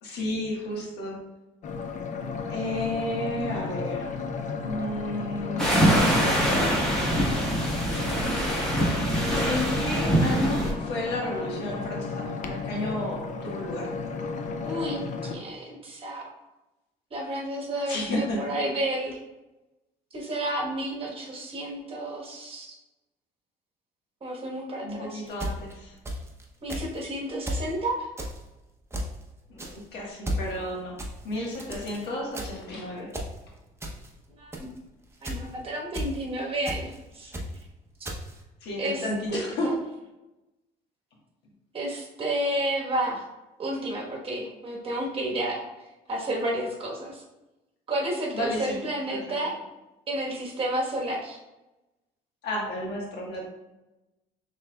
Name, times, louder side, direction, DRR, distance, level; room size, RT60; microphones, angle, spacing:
voice 1, 0.0-1.2 2.5-4.1 4.6-5.7 9.4-13.9 17.9-18.5 24.8-25.9 29.5-31.0 31.2-33.1 38.6-39.7 48.3-48.8 49.1-49.2 52.4-53.5, left 1 dB, 80° left, -2 dB, 1.3 m, -32 dB
sound 1, 1.6-15.4, left 4 dB, 45° left, 0.5 m, -33 dB
sound 2, 5.6-10.7, equal, 5° left, 1.4 m, -24 dB
voice 2, 14.6-16.2 17.1-19.2 20.1-22.7 24.2-25.2 26.6-28.1 34.4-34.7 35.2-37.3 38.8-39.4 41.7-43.2 43.6-45.6 46.1-47.2 47.9-49.5 50.1-51.4, right 1 dB, 35° right, -2 dB, 1.2 m, -31 dB
sound 3, 25.3-26.4 26.7-27.0 27.5-27.7 28.2-28.4 28.9-29.2 29.6-29.8 30.2-30.5 31.0-32.1 32.3-32.7 33.1-33.4 33.8-34.1 34.5-34.8 35.2-35.5 35.9-36.2 36.6-37.0 37.3-37.6 38.0-38.4, equal, 15° right, 0.7 m, -34 dB
5.9 x 3.4 x 2.2 m, 1.0 s
cardioid pair, 110°, 17 cm